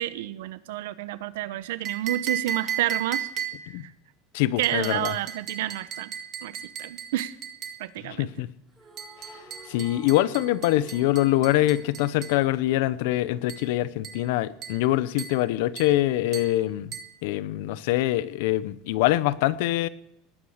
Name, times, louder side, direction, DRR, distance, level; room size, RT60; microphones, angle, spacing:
voice 1, 0.0-3.3 4.6-6.1 6.4-6.5 6.8-7.3 7.8-8.3, right 14 dB, 90° right, 0.9 m, -29 dB
sound 1, 1.8-3.8 4.6-7.9 9.0-12.4 13.5-13.7 14.0-14.3 14.6-14.9 15.2-15.4 15.8-16.0 16.3-16.6 16.9-17.2, right 9 dB, 30° right, 1.5 m, -36 dB
voice 2, 4.3-5.1 8.0-8.5 9.7-16.9 17.2-19.9, left 15 dB, 60° left, 0.7 m, -24 dB
sound 2, 8.7-13.1, right 1 dB, 5° right, 2.1 m, -50 dB
19.5 x 8.8 x 6.4 m
cardioid pair, 180°, 0 cm